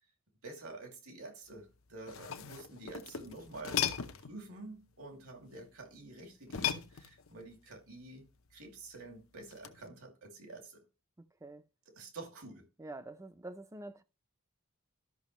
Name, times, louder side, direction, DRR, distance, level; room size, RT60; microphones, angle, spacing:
voice 1, 0.4-3.8 4.3-8.3 8.5-10.8 12.0-12.6, right 2 dB, 80° right, 2.5 m, -48 dB
sound 1, 1.9-4.4 6.5-7.4 9.5-9.9, left 8 dB, 70° left, 0.8 m, -37 dB
voice 2, 12.8-14.0, right 2 dB, 15° right, 0.5 m, -46 dB
12.5 x 6.0 x 3.1 m
head